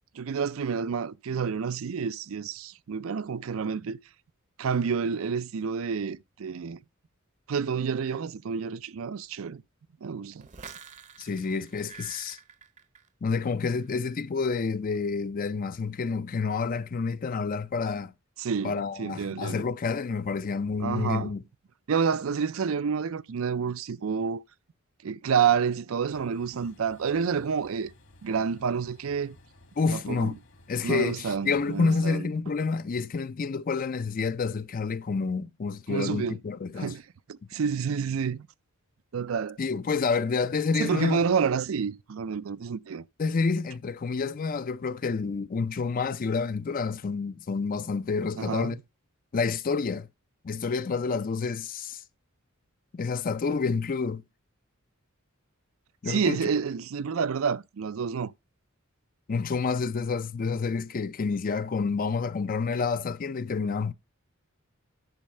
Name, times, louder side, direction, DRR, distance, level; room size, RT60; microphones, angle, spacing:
voice 1, 0.2-4.0 4.6-6.8 7.5-9.6 10.0-10.4 18.4-19.7 20.8-21.3 21.9-24.4 25.0-27.9 28.2-29.4 29.9-30.3 30.8-32.3 35.9-36.4 36.8-37.0 37.5-38.5 39.1-39.6 40.8-43.0 48.4-48.8 56.1-58.3, right 6 dB, 70° right, 0.4 m, -29 dB
sound 1, 10.4-13.5 13.8-14.2, right 6 dB, 35° right, 0.7 m, -48 dB
voice 2, 11.2-12.4 13.2-18.1 18.6-21.4 29.8-30.4 30.7-36.9 39.6-41.2 43.2-48.8 49.3-50.1 50.4-52.0 52.9-54.2 56.0-56.4 59.3-63.9, left 4 dB, 40° left, 0.4 m, -29 dB
Train, 26.1-32.1, left 1 dB, 60° left, 1.7 m, -56 dB
10.5 x 4.6 x 5.4 m
head